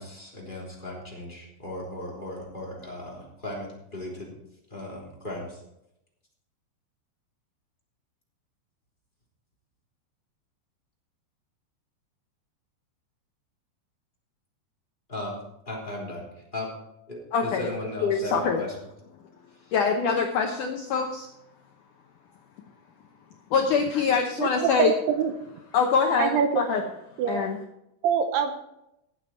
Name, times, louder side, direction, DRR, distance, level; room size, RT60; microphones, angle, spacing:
voice 1, 0.0-4.3 4.7-5.6 15.1-15.4 15.7-16.3 16.5-16.7 17.1-18.7, left 1 dB, 15° left, -2 dB, 2.9 m, -36 dB
voice 2, 17.3-17.7 18.0-18.6 19.7-21.3 23.5-24.9 25.7-26.8 27.3-27.6, left 5 dB, 90° left, 3 dB, 1.7 m, -24 dB
voice 3, 24.4-25.3 26.2-26.6 27.2-27.5 28.0-28.5, right 8 dB, 75° right, 7 dB, 2.7 m, -24 dB
17.5 x 8.0 x 4.4 m, 0.84 s
omnidirectional pair, 5.1 m